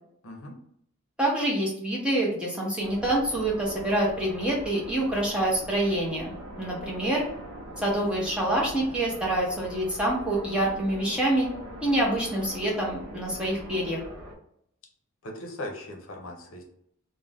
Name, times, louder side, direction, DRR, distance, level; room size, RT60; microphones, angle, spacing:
voice 1, 0.2-0.6 15.2-16.6, left 1 dB, 70° left, 2 dB, 0.6 m, -39 dB
voice 2, 1.2-6.3 6.6-7.2 7.8-11.5 11.8-14.0, right 1 dB, 5° right, -4 dB, 0.6 m, -26 dB
sound 1, 2.8-14.4, right 1 dB, 90° right, 0.7 m, -42 dB
2.5 x 2.1 x 3.3 m, 0.72 s
head